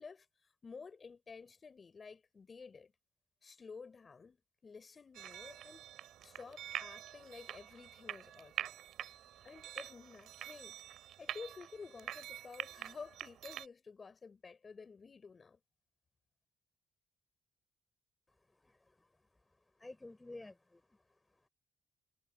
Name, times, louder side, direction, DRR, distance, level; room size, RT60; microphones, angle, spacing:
voice 1, 0.0-2.9 3.4-5.9 6.2-8.7 9.4-10.8 11.2-15.6, left 5 dB, 35° left, 6.2 m, -52 dB
sound 1, 5.1-13.7, right 11 dB, 80° right, 2.8 m, -46 dB
voice 2, 18.6-19.1 19.8-21.0, left 2 dB, 15° left, 6.7 m, -52 dB
cardioid pair, 90°, 0 cm